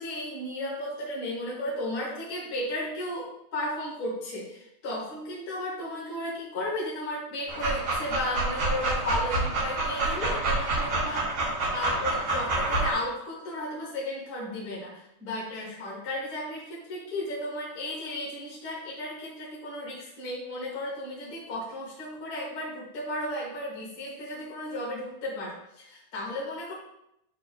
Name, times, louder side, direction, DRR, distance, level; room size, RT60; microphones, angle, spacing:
voice 1, 0.0-26.7, left 1 dB, 35° left, -6 dB, 1.9 m, -34 dB
Dog, 7.5-12.9, right 2 dB, 75° right, 4.6 m, -28 dB
11.5 x 4.0 x 2.6 m, 0.81 s
omnidirectional pair, 4.0 m